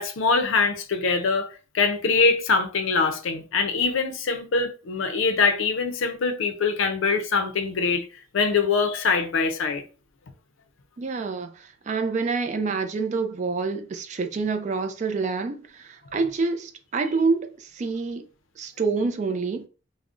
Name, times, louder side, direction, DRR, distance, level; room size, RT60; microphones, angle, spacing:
voice 1, 0.0-8.0 8.3-9.8, left 4 dB, 85° left, 0.5 m, -23 dB
voice 2, 11.0-18.2 18.6-19.7, right 4 dB, 35° right, 0.3 m, -27 dB
2.4 x 2.0 x 3.6 m
head